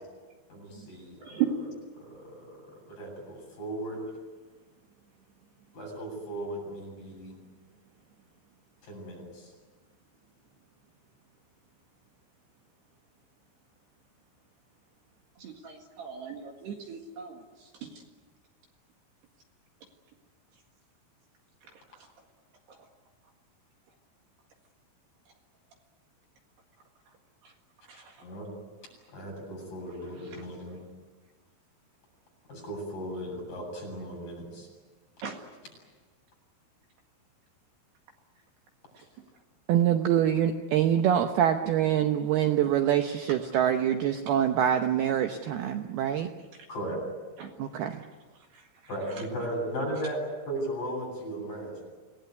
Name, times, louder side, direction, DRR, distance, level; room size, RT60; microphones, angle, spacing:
voice 1, 0.5-1.4 2.0-2.6 2.9-4.0 5.7-7.4 8.9-9.5 28.2-28.5 29.1-30.8 32.5-34.7 46.7-47.0 48.9-51.8, right 1 dB, 40° left, 0 dB, 9.5 m, -36 dB
voice 2, 15.4-17.4 17.8-17.9 27.9-28.1 35.2-35.4 47.4-47.5, right 12 dB, 60° right, 3 dB, 3.6 m, -35 dB
voice 3, 39.7-46.3 47.6-48.0, right 10 dB, 85° right, 6 dB, 2.2 m, -25 dB
27.0 x 19.5 x 9.5 m, 1.4 s
omnidirectional pair, 5.9 m